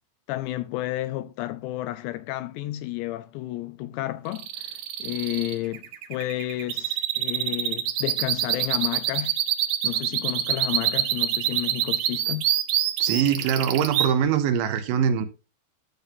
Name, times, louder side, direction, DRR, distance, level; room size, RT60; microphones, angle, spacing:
voice 1, 0.3-9.4 9.8-12.5, left 16 dB, 85° left, 2.6 m, -31 dB
sound 1, 4.3-14.1, right 11 dB, 70° right, 2.3 m, -25 dB
voice 2, 13.0-15.3, right 8 dB, 90° right, 3.5 m, -23 dB
12.5 x 6.9 x 2.6 m
omnidirectional pair, 5.3 m